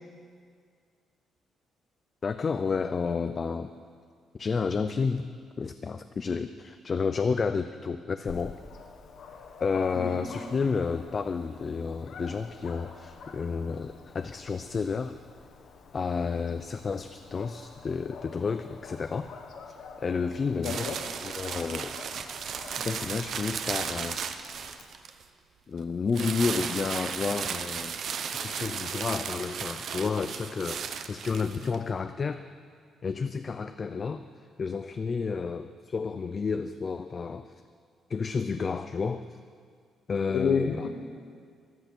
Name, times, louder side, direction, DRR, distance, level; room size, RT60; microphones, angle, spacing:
voice 1, 2.2-3.7 4.3-5.2 5.6-8.5 9.6-15.2 15.9-19.3 19.7-21.0 21.2-22.0 22.7-24.2 25.7-28.0 28.3-32.4 33.0-34.3 34.6-37.6 38.1-39.4 40.1-40.9, left 5 dB, 30° left, 10 dB, 0.3 m, -31 dB
Dog, 8.3-24.8, left 5 dB, 55° left, 1.1 m, -48 dB
voice 2, 9.9-10.2 20.6-21.0 40.3-40.9, left 6 dB, 85° left, 1 dB, 1.2 m, -29 dB
sound 1, 20.6-25.2 26.1-31.8, right 7 dB, 50° right, 0.7 m, -35 dB
14.5 x 10.5 x 6.0 m, 2.1 s
cardioid pair, 165°, 0 cm